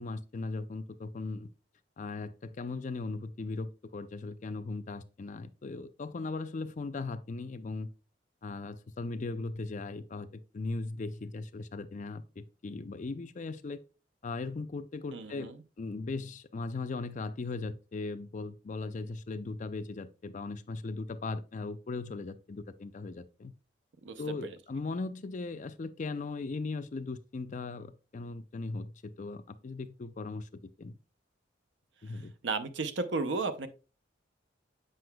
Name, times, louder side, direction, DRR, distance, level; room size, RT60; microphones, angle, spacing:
voice 1, 0.0-1.5 2.0-7.9 8.4-10.3 10.5-13.8 14.2-15.5 15.8-23.5 24.2-30.5 30.8-31.0 32.0-32.3, left 3 dB, 40° left, 0.4 m, -38 dB
voice 2, 15.1-15.6 24.0-24.6 32.1-33.7, right 3 dB, 70° right, 0.7 m, -34 dB
7.7 x 5.6 x 2.2 m
head